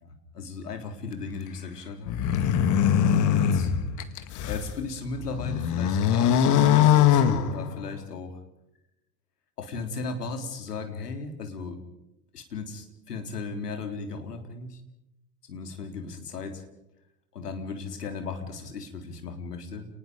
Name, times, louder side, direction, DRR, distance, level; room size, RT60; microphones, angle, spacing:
voice 1, 0.0-2.2 3.1-3.7 4.5-8.4 9.6-11.8 12.3-14.8 15.5-16.6 17.3-19.9, left 4 dB, 75° left, 5 dB, 3.7 m, -36 dB
sound 1, 2.1-4.7 5.2-8.0, left 9 dB, 40° left, 2.1 m, -22 dB
30.0 x 20.0 x 5.2 m, 0.88 s
figure-of-eight pair, 85°, 47 cm